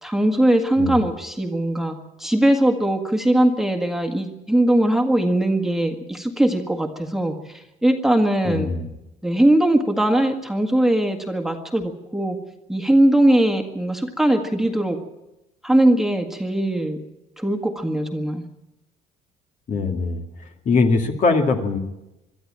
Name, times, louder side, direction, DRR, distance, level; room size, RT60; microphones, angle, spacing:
voice 1, 0.0-8.7 9.2-12.4 12.7-15.0 15.6-17.0 17.4-18.4, right 1 dB, ahead, 4 dB, 1.8 m, -20 dB
voice 2, 8.4-8.9 19.7-20.2 20.7-21.8, left 4 dB, 45° left, 4 dB, 2.4 m, -21 dB
23.5 x 12.5 x 8.8 m, 0.95 s
cardioid pair, 110°, 17 cm